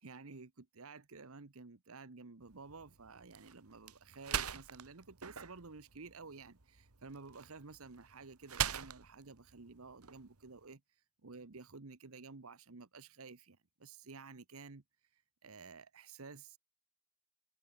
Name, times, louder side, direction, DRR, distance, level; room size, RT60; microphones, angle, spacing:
voice 1, 0.0-10.8 11.2-14.8 15.4-16.6, right 4 dB, 75° right, 1.1 m, -52 dB
sound 1, 2.4-10.7, right 8 dB, 90° right, 1.8 m, -43 dB
head